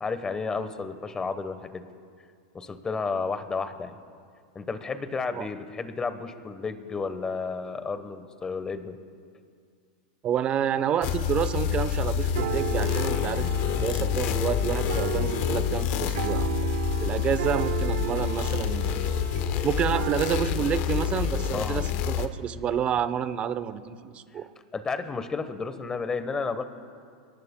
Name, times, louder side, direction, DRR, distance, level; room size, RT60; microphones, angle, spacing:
voice 1, 0.0-1.8 2.5-3.9 4.5-9.0 21.5-21.8 24.7-26.6, left 4 dB, 15° left, 10 dB, 1.0 m, -32 dB
voice 2, 10.2-19.1 19.6-24.5, right 9 dB, 30° right, 12 dB, 0.7 m, -29 dB
sound 1, 11.0-22.3, left 9 dB, 45° left, 0.9 m, -27 dB
sound 2, 11.0-20.5, right 12 dB, 75° right, 0.6 m, -35 dB
29.5 x 18.5 x 2.2 m, 2.2 s
supercardioid pair, 140°, 4 cm